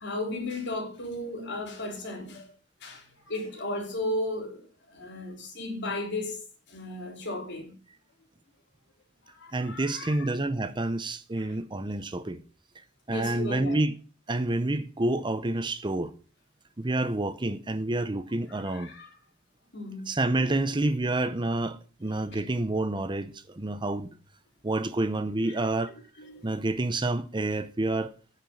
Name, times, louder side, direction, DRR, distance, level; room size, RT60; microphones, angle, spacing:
voice 1, 0.0-2.5 2.8-6.4 6.7-7.8 9.3-10.3 11.4-11.5 13.1-13.8 18.6-19.1 19.7-20.1 22.3-22.4 26.2-26.5, left 1 dB, 60° left, 3.4 m, -35 dB
voice 2, 9.5-12.4 13.1-14.0 14.3-16.1 16.8-18.9 20.1-24.1 24.6-25.9 26.4-28.1, right 2 dB, 25° right, 0.8 m, -28 dB
9.1 x 6.7 x 8.7 m
head